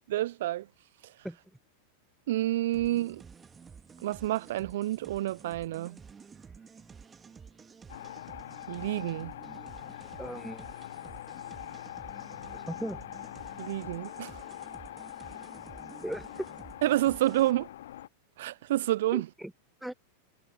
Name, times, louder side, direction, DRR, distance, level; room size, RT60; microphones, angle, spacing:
voice 1, 0.1-0.7 2.3-3.2 4.0-6.0 8.7-9.3 13.6-14.4 16.8-17.7 18.4-19.3, right 15 dB, 55° right, 0.6 m, -29 dB
sound 1, 2.7-17.5, right 6 dB, 15° right, 1.7 m, -51 dB
sound 2, 7.9-18.1, left 12 dB, 60° left, 0.7 m, -43 dB
voice 2, 10.2-10.7 12.5-13.0 16.0-16.3 19.1-19.5 19.8-19.9, right 1 dB, ahead, 0.5 m, -37 dB
figure-of-eight pair, 90°, 0 cm